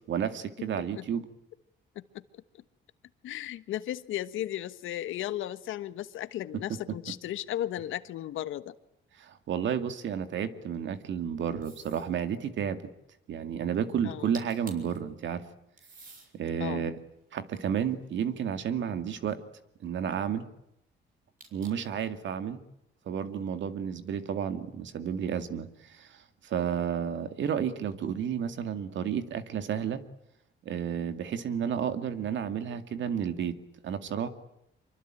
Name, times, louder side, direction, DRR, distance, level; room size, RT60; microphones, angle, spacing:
voice 1, 0.1-1.3 6.9-7.0 9.2-12.8 13.3-15.4 16.3-17.0 17.3-19.4 19.8-20.5 21.5-22.6 23.1-30.0 30.6-33.6 33.8-34.3, right 8 dB, 70° right, 9 dB, 2.3 m, -31 dB
voice 2, 3.2-8.7 14.0-14.3 16.6-16.9, left 13 dB, 80° left, 13 dB, 1.3 m, -35 dB
sound 1, 11.6-12.1 14.1-14.2 14.3-15.0 15.8-16.3 17.0-18.4 21.4-22.0, right 3 dB, 45° right, 6.8 m, -50 dB
25.5 x 24.0 x 9.1 m, 0.83 s
cardioid pair, 90°, 20 cm